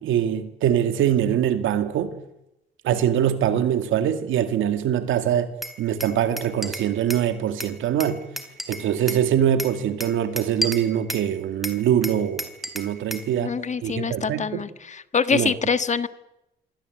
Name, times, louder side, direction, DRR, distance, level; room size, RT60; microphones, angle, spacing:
voice 1, 0.0-2.2 2.8-5.5 5.8-8.3 8.7-12.5 12.7-13.5 13.8-14.6 15.3-15.5, right 10 dB, 85° right, 2.4 m, -23 dB
Glass, 5.6-7.3 7.6-9.2 9.6-11.3 11.6-13.3, equal, ahead, 3.5 m, -33 dB
voice 2, 13.4-16.1, left 5 dB, 35° left, 1.5 m, -25 dB
26.5 x 23.0 x 8.1 m
cardioid pair, 90°, 20 cm